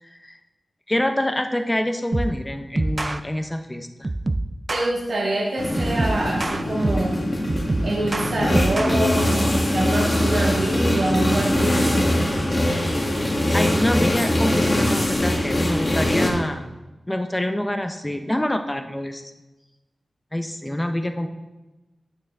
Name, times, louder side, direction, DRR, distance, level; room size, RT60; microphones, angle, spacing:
voice 1, 0.9-4.1 13.5-16.6 17.1-19.3 20.3-21.3, left 1 dB, 10° left, 7 dB, 0.7 m, -26 dB
sound 1, 2.1-2.4 2.8-3.2 4.0-4.9 5.8-7.1 7.5-9.0, right 2 dB, 30° right, 0.4 m, -26 dB
voice 2, 4.7-7.2 7.8-12.2, right 2 dB, 90° right, -4 dB, 1.7 m, -25 dB
sound 2, 5.6-16.3, left 1 dB, 30° left, 1.4 m, -22 dB
8.7 x 8.7 x 3.5 m, 1.1 s
wide cardioid pair, 125°, 0 cm